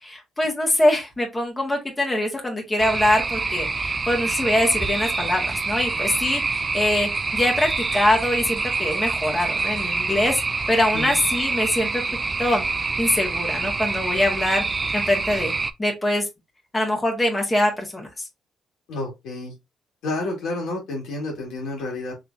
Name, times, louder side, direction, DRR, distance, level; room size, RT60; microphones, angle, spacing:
voice 1, 0.0-12.0 12.4-12.6 13.0-14.6 14.9-15.5 15.8-16.3 16.7-18.2, left 1 dB, 15° left, 1.5 m, -23 dB
sound 1, 2.8-15.7, right 3 dB, 30° right, 0.4 m, -26 dB
voice 2, 18.9-19.5 20.0-22.1, left 2 dB, 85° left, 2.1 m, -30 dB
3.8 x 3.3 x 2.6 m
cardioid pair, 90°, 0 cm